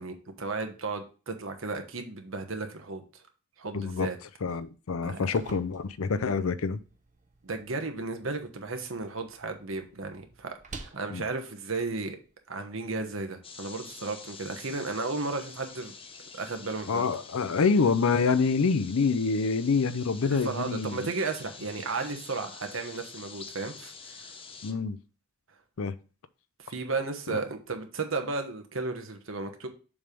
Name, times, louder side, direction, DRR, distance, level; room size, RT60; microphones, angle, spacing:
voice 1, 0.0-3.2 3.6-4.2 5.0-5.3 7.4-12.2 12.5-15.9 16.4-17.1 20.2-24.3 26.6-29.7, right 3 dB, 70° right, 1.2 m, -34 dB
voice 2, 3.7-4.1 4.4-6.8 11.1-11.3 16.9-21.0 24.6-25.0 25.8-26.0 27.3-27.4, left 4 dB, 90° left, 0.5 m, -26 dB
sound 1, 4.9-12.9, right 3 dB, 35° right, 0.8 m, -51 dB
sound 2, 13.4-24.7, left 5 dB, 25° left, 0.7 m, -47 dB
7.1 x 3.5 x 5.1 m
head